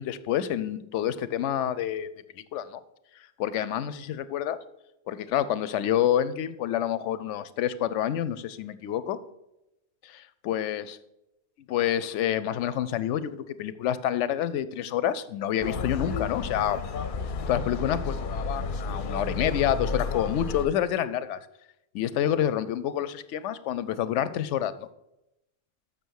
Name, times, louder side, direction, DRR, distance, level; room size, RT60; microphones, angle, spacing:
voice 1, 0.0-2.1 2.3-2.8 3.4-4.6 5.1-9.2 10.0-10.9 11.7-16.8 17.5-21.4 21.9-24.9, left 10 dB, 90° left, 15 dB, 0.9 m, -28 dB
sound 1, 15.6-20.7, left 4 dB, 55° left, 0.7 m, -32 dB
6.9 x 6.1 x 6.3 m, 0.89 s
omnidirectional pair, 1.2 m